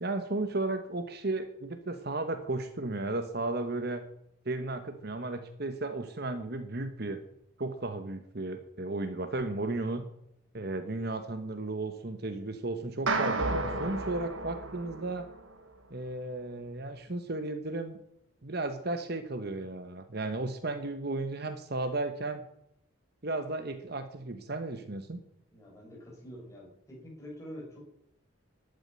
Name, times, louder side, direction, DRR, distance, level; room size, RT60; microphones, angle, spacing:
voice 1, 0.0-4.0 4.4-7.2 7.6-10.0 10.5-15.3 15.9-18.0 18.4-22.4 23.2-25.2, right 2 dB, 50° right, 8 dB, 1.1 m, -34 dB
sound 1, 13.1-15.5, right 2 dB, 70° right, 1.6 m, -32 dB
voice 2, 25.5-27.8, equal, 15° left, -3 dB, 5.5 m, -46 dB
11.5 x 8.9 x 9.7 m, 0.77 s
head